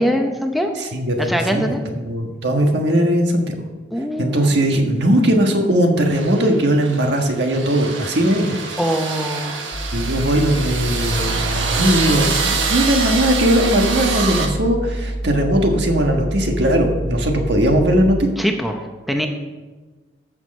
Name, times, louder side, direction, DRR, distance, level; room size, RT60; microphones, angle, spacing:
voice 1, 0.0-0.7 1.2-1.8 3.9-4.3 8.8-9.6 18.4-19.3, equal, ahead, 4 dB, 0.8 m, -22 dB
voice 2, 0.8-1.6 1.9-3.6 4.2-8.6 9.9-18.3, right 1 dB, 65° right, 3 dB, 1.5 m, -19 dB
sound 1, 6.1-14.5, right 4 dB, 85° right, 1.4 m, -25 dB
sound 2, 9.7-18.2, right 1 dB, 70° left, 1.4 m, -27 dB
14.5 x 6.4 x 5.4 m, 1.3 s
head